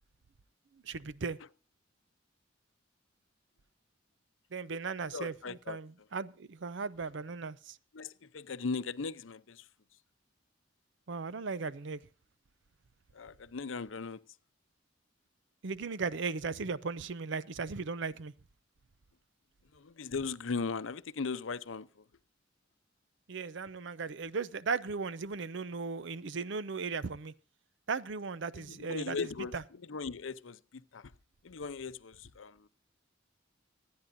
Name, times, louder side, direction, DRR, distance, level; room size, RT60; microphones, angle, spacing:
voice 1, 0.8-1.4 4.5-7.8 11.1-12.0 15.6-18.3 23.3-27.3 27.9-29.6, right 4 dB, 65° right, 0.6 m, -37 dB
voice 2, 5.1-5.8 7.9-9.6 13.2-14.2 19.8-21.9 28.9-29.5 29.9-30.6 30.9-31.0 31.4-32.5, left 4 dB, 90° left, 0.7 m, -37 dB
25.5 x 9.6 x 2.6 m
head